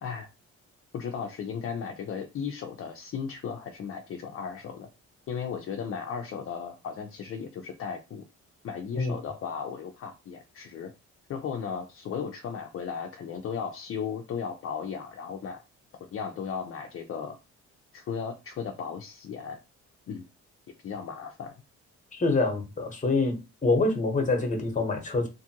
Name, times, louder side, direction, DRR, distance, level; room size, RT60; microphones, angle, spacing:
voice 1, 0.9-4.9 5.3-8.2 8.6-10.9 11.3-15.6 16.0-17.4 17.9-19.6 20.1-20.3 20.8-21.5, left 6 dB, 45° left, 0.5 m, -35 dB
voice 2, 22.1-23.3 23.6-25.3, left 3 dB, 25° left, 1.0 m, -25 dB
2.6 x 2.4 x 2.8 m
cardioid pair, 90°, 30 cm